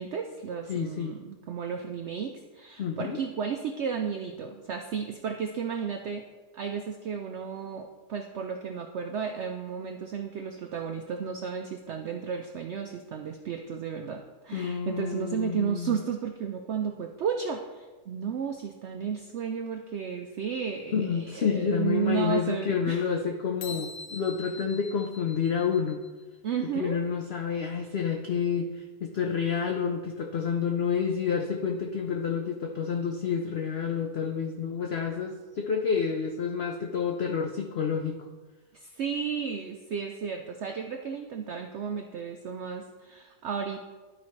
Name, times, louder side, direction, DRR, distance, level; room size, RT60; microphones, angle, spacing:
voice 1, 0.0-6.3 6.5-23.0 26.4-27.0 38.7-43.8, right 7 dB, 90° right, 5 dB, 0.6 m, -33 dB
voice 2, 0.7-1.1 2.8-3.2 14.5-16.0 20.9-26.0 26.7-38.2, left 6 dB, 70° left, 2 dB, 0.6 m, -29 dB
sound 1, 23.6-26.2, left 4 dB, 85° left, 1.4 m, -43 dB
12.0 x 4.9 x 3.2 m, 1.3 s
omnidirectional pair, 1.7 m